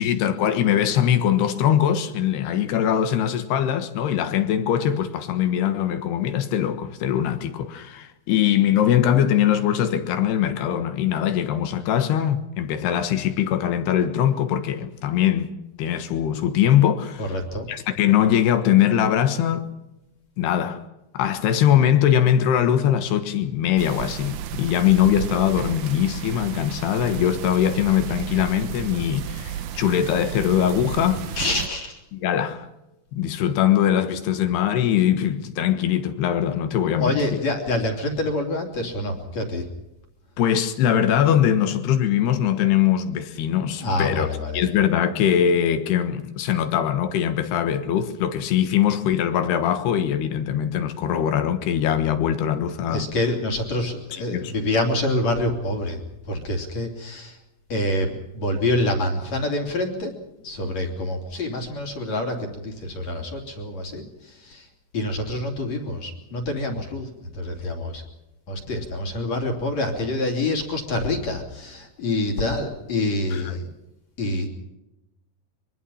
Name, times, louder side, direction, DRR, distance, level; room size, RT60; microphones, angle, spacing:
voice 1, 0.0-15.5 15.8-17.3 17.7-19.7 20.4-20.8 21.1-31.3 32.1-32.7 33.1-37.4 40.4-44.3 44.5-53.1 54.3-54.5 73.3-73.6, left 10 dB, 75° left, 3.4 m, -21 dB
voice 2, 17.2-17.7 31.4-32.0 37.0-39.6 43.8-44.6 52.9-56.0 56.3-57.4 57.7-58.1 58.3-60.1 60.4-64.7 64.9-67.1 67.3-68.0 68.5-73.7 74.2-74.5, left 1 dB, 45° left, 3.9 m, -26 dB
sound 1, 23.8-31.7, right 10 dB, 70° right, 2.0 m, -33 dB
24.0 x 23.5 x 5.7 m
omnidirectional pair, 4.8 m